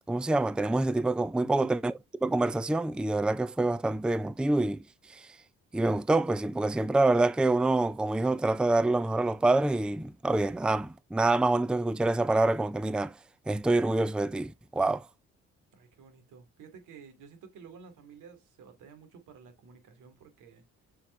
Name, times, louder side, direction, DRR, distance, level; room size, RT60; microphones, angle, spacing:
voice 1, 0.1-1.9 2.2-4.8 5.1-5.3 5.7-13.1 13.5-15.1, right 2 dB, 5° right, 0.5 m, -26 dB
voice 2, 15.7-20.6, right 6 dB, 85° right, 2.7 m, -52 dB
7.7 x 5.8 x 3.3 m
cardioid pair, 90°, 30 cm